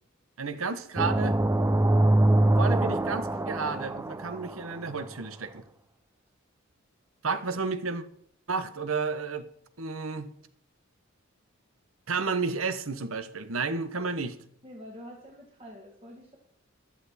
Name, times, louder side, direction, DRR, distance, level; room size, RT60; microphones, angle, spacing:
voice 1, 0.4-1.4 2.6-5.6 7.2-8.0 8.5-9.5 9.8-10.3 12.1-14.4, right 4 dB, 85° right, 11 dB, 1.2 m, -31 dB
sound 1, 1.0-4.8, right 1 dB, 15° right, 0.5 m, -24 dB
voice 2, 14.6-16.4, equal, 30° right, -1 dB, 1.8 m, -46 dB
14.5 x 11.0 x 4.3 m, 0.67 s
head